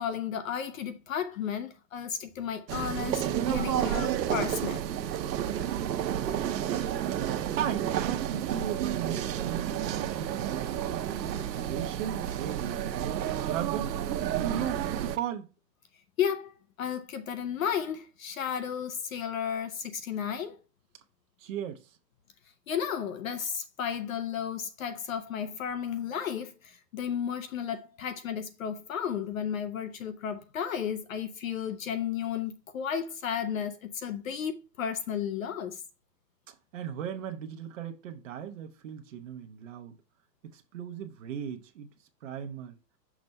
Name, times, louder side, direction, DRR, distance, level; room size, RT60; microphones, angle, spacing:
voice 1, 0.0-4.8 16.2-16.5 16.8-20.6 22.7-35.8, left 8 dB, 55° left, 0.7 m, -33 dB
sound 1, 2.7-15.2, right 10 dB, 80° right, 0.8 m, -31 dB
voice 2, 7.5-11.0 11.6-14.0 14.3-15.5 21.4-22.0 36.5-40.0 40.5-41.9 42.2-42.8, right 9 dB, 50° right, 0.9 m, -37 dB
6.1 x 3.3 x 5.2 m
hypercardioid pair, 170°, 50 cm